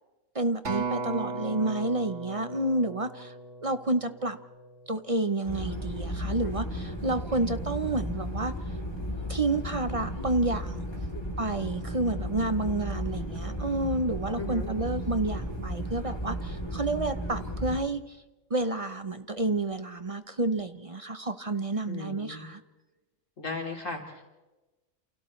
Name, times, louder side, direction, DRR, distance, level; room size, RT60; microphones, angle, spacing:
voice 1, 0.3-3.3 3.6-4.4 4.9-8.5 9.3-10.9 11.4-18.2 18.5-22.6, right 2 dB, 35° right, 10 dB, 0.6 m, -30 dB
Acoustic guitar, 0.6-5.1 5.7-5.8, right 4 dB, 65° right, 2.5 m, -37 dB
sound 1, 5.4-17.8, equal, 20° left, 3.3 m, -34 dB
voice 2, 14.4-14.7 21.9-22.5 23.4-24.2, left 3 dB, 75° left, 0 dB, 3.5 m, -37 dB
29.0 x 28.5 x 3.2 m, 1.1 s
omnidirectional pair, 1.3 m